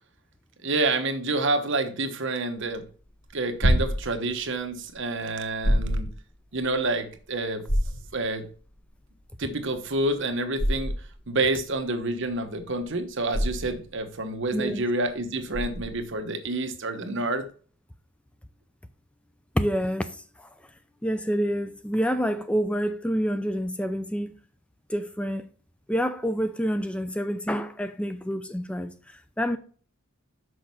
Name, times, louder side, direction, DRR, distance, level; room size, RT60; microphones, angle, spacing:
voice 1, 0.6-2.8 3.3-6.1 6.5-7.6 8.1-8.5 9.4-10.9 11.3-17.4, right 2 dB, 60° right, 1.1 m, -28 dB
sound 1, 2.6-16.1, equal, 70° left, 3.2 m, -29 dB
voice 2, 14.5-14.8 19.5-20.5 21.0-24.3 24.9-25.5 25.9-29.6, equal, 5° left, 0.4 m, -28 dB
6.2 x 5.3 x 6.0 m
head